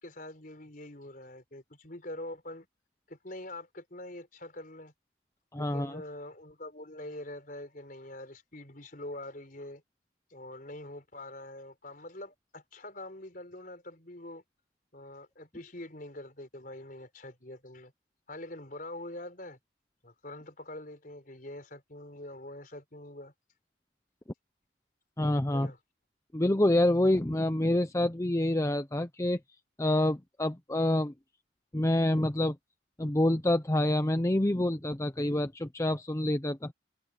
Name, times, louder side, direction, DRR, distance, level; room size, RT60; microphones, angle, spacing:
voice 1, 0.0-2.7 3.1-4.9 5.6-9.8 10.3-14.4 14.9-17.9 18.3-19.6 20.0-23.3 25.5-25.8, left 1 dB, 45° left, 4.5 m, -44 dB
voice 2, 5.5-6.0 25.2-25.7 26.3-29.4 29.8-31.1 31.7-32.6 33.0-36.7, left 1 dB, 15° left, 0.6 m, -27 dB
head